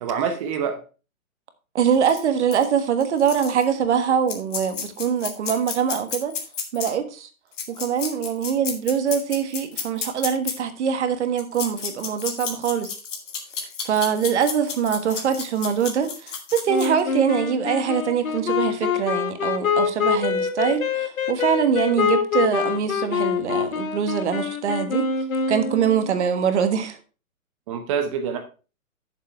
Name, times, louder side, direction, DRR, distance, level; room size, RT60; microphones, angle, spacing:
voice 1, 0.0-0.8 27.7-28.4, right 7 dB, 25° right, 0.7 m, -26 dB
voice 2, 1.7-6.3 6.7-7.3 7.7-12.9 13.8-25.0 25.5-27.0, right 7 dB, 55° right, 1.5 m, -23 dB
sound 1, 2.0-2.2 2.5-2.6 3.0-3.7 4.3-6.9 7.5-10.5 11.4-17.0, left 6 dB, 55° left, 2.3 m, -32 dB
Wind instrument woodwind instrument, 16.7-26.1, left 6 dB, 75° left, 1.6 m, -25 dB
8.2 x 7.1 x 4.4 m
hypercardioid pair, 145°, 42 cm